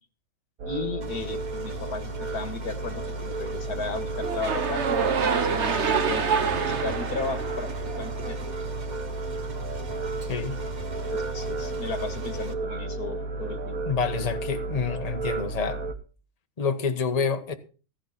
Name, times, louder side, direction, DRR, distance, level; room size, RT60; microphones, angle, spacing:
voice 1, 0.6-4.8 5.3-6.3 6.6-8.5 11.1-13.9, left 4 dB, 80° left, 2.3 m, -35 dB
sound 1, 0.6-15.9, right 3 dB, 65° right, 1.8 m, -33 dB
Engine, 1.0-12.5, right 4 dB, 30° right, 1.2 m, -42 dB
sound 2, 4.2-8.4, right 6 dB, 50° right, 1.5 m, -27 dB
voice 2, 10.3-10.6 13.8-15.8 16.6-17.5, left 5 dB, 25° left, 1.3 m, -28 dB
15.5 x 11.0 x 4.1 m
omnidirectional pair, 1.6 m